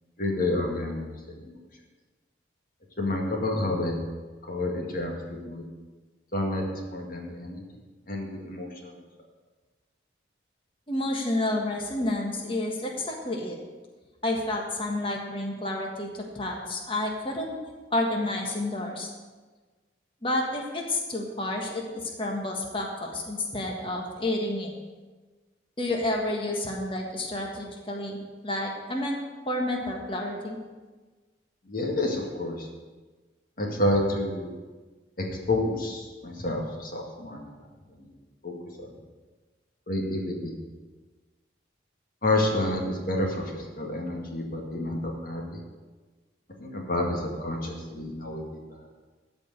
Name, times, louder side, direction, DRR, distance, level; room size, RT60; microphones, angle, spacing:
voice 1, 0.2-1.6 3.0-3.9 4.5-5.7 6.3-7.6 8.1-9.0 31.7-32.7 33.6-34.5 35.2-37.5 38.4-38.9 39.9-40.5 42.2-45.6 46.6-48.6, left 1 dB, 50° left, 0 dB, 2.1 m, -29 dB
voice 2, 10.9-13.6 14.2-17.6 17.9-19.1 20.2-24.7 25.8-29.2 29.5-30.6, left 1 dB, 30° left, 0 dB, 1.5 m, -30 dB
14.0 x 5.2 x 8.1 m, 1.3 s
head